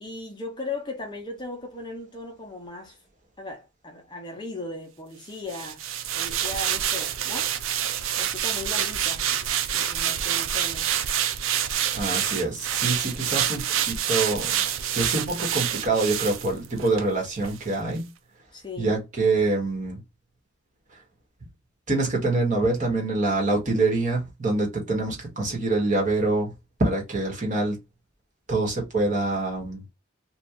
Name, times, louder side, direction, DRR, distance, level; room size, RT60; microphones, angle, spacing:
voice 1, 0.0-3.0 3.4-5.8 6.2-7.5 8.2-9.3 9.7-10.9 18.5-19.0, left 2 dB, 20° left, 0.7 m, -37 dB
sound 1, 5.5-17.1 17.4-17.6, right 10 dB, 75° right, 0.4 m, -27 dB
voice 2, 11.9-14.6 14.9-18.1 18.8-20.0 21.9-26.5 26.8-27.8 28.5-29.8, right 2 dB, 40° right, 1.3 m, -25 dB
2.9 x 2.4 x 3.5 m
head